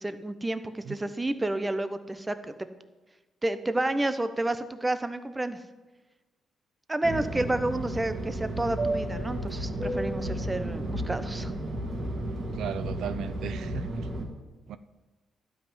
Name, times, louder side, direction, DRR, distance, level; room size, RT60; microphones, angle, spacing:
voice 1, 0.0-2.5 3.4-5.6 6.9-11.5, right 2 dB, 15° right, 11 dB, 0.8 m, -30 dB
Fixed-wing aircraft airplane, 7.0-14.2, right 1 dB, 45° right, 2.5 m, -32 dB
voice 2, 12.5-14.1 14.7-14.8, right 9 dB, 75° right, 13 dB, 0.5 m, -36 dB
12.0 x 5.7 x 9.1 m, 1.2 s
cardioid pair, 90°, 0 cm